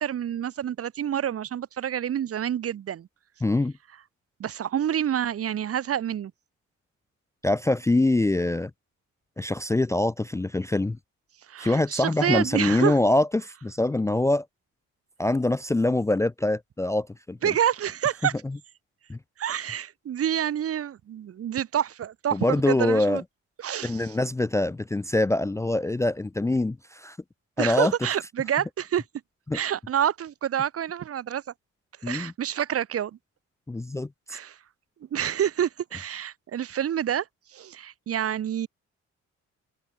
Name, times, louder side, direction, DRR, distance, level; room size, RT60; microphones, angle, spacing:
voice 1, 0.0-3.1 4.4-6.3 11.5-12.9 17.4-18.3 19.4-23.2 23.6-24.1 27.6-29.0 29.5-31.4 32.0-33.1 34.3-34.6 35.1-37.2 37.5-38.7, right 10 dB, 50° right, 0.9 m, -28 dB
voice 2, 3.4-3.7 7.4-8.7 9.4-11.0 11.6-14.5 15.2-17.5 18.4-18.6 19.1-19.2 22.3-23.2 23.8-27.2 27.6-27.9 29.5-29.6 32.0-32.3 33.7-34.4, left 2 dB, 10° left, 0.4 m, -24 dB
cardioid pair, 90°, 30 cm